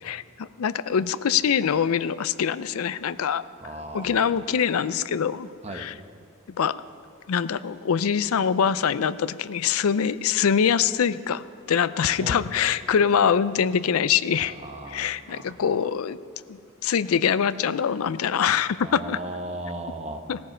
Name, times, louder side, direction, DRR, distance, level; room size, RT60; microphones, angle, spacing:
voice 1, 0.0-3.4 3.9-6.0 6.6-6.7 7.3-14.5 14.9-16.2 16.5-19.2 20.3-20.4, left 7 dB, 75° left, 15 dB, 0.4 m, -24 dB
voice 2, 3.6-4.2 5.6-5.9 12.2-12.4 14.6-15.4 18.9-20.2, right 1 dB, 30° right, 5 dB, 1.0 m, -36 dB
17.5 x 14.0 x 4.4 m, 2.2 s
head